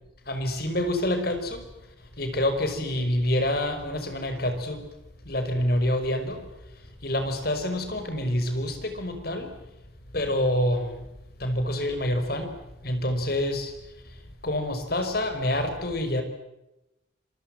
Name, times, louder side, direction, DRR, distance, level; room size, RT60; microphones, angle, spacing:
voice 1, 0.3-1.6 2.0-4.9 5.2-6.5 7.0-9.6 10.1-11.1 11.4-12.5 12.8-13.7 14.0-16.2, left 1 dB, 50° left, 7 dB, 5.4 m, -27 dB
27.0 x 24.5 x 7.7 m, 0.92 s
head